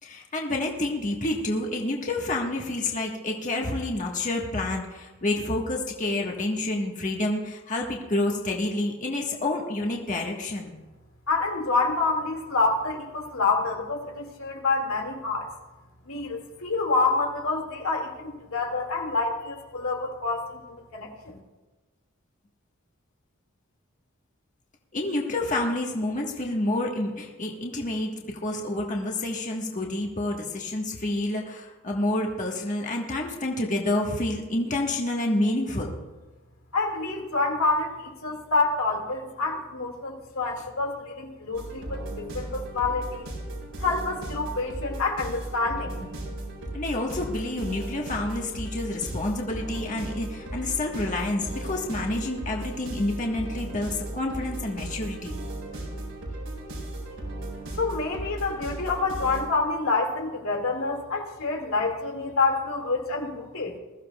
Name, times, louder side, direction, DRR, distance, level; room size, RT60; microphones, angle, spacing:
voice 1, 0.0-10.7 24.9-35.9 46.7-55.4 55.7-55.8, left 2 dB, 35° left, 0 dB, 1.4 m, -28 dB
voice 2, 11.3-15.5 16.1-21.4 36.7-43.3 43.8-46.1 57.1-57.2 57.8-63.7, left 3 dB, 90° left, 1 dB, 2.2 m, -27 dB
sound 1, 41.5-59.4, right 1 dB, 90° right, 4.9 m, -36 dB
21.0 x 14.5 x 2.4 m, 1.2 s
head